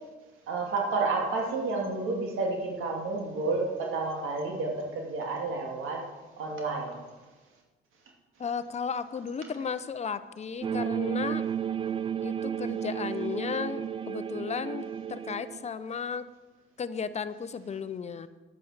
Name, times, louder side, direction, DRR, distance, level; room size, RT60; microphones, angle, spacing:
voice 1, 0.5-6.0 6.4-7.0, right 3 dB, 75° right, 0 dB, 2.6 m, -30 dB
voice 2, 8.4-11.4 12.2-16.3 16.8-18.3, left 6 dB, 30° left, 13 dB, 0.7 m, -34 dB
sound 1, 10.6-15.7, right 8 dB, 25° right, 0.3 m, -32 dB
10.5 x 9.3 x 6.5 m, 1.2 s
cardioid pair, 110°, 21 cm